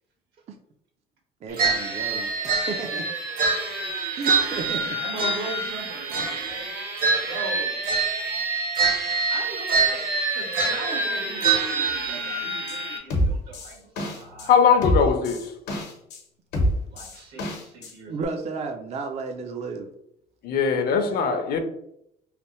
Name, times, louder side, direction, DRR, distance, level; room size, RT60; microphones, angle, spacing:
voice 1, 1.4-3.1 4.2-5.0 6.1-6.5 18.1-19.9, right 4 dB, 40° right, 0.4 m, -33 dB
sound 1, 1.6-13.0, right 4 dB, 60° right, 1.0 m, -25 dB
voice 2, 5.0-6.7 7.3-7.8 9.3-10.1 10.3-14.5 14.8-15.1 16.9-18.1, right 3 dB, 75° right, 1.3 m, -39 dB
sound 2, 12.7-12.8 13.1-14.5 14.8-16.2 16.5-17.9 18.2-18.3, equal, 85° left, 0.9 m, -26 dB
voice 3, 14.5-15.4 20.4-21.6, left 6 dB, 65° left, 0.6 m, -20 dB
3.3 x 2.6 x 3.0 m
cardioid pair, 110°, 17 cm